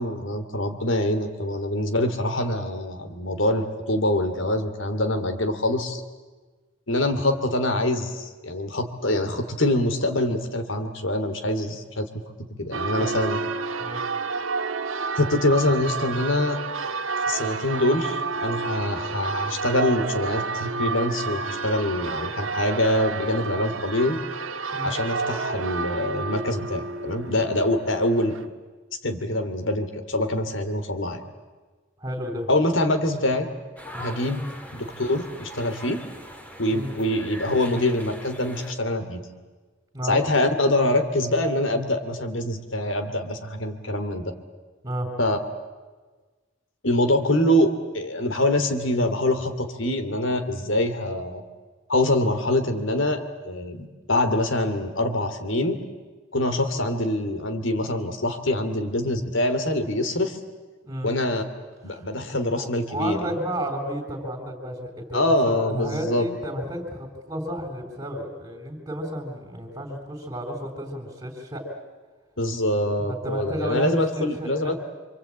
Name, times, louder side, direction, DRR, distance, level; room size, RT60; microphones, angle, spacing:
voice 1, 0.0-6.0 6.9-12.1 12.6-13.4 15.2-16.6 17.3-24.2 24.8-28.4 29.0-31.2 32.5-33.5 34.0-34.4 34.7-36.0 36.6-39.2 40.0-44.3 45.2-45.4 46.8-51.4 51.9-55.8 56.3-60.4 61.0-61.4 61.8-63.2 65.1-66.3 72.4-74.7, left 1 dB, 70° left, 9 dB, 2.7 m, -24 dB
voice 2, 12.6-13.1 13.8-14.0 24.7-24.9 32.0-32.5 33.9-34.1 36.7-36.9 39.9-40.2 44.8-45.1 60.8-61.1 61.9-62.1 62.5-71.6 73.1-74.8, equal, 20° right, 0 dB, 3.9 m, -32 dB
Church bell, 12.7-28.4, right 4 dB, 85° right, 1.5 m, -30 dB
sound 1, 33.8-38.7, equal, 5° left, 2.4 m, -41 dB
27.5 x 25.0 x 8.7 m, 1.3 s
head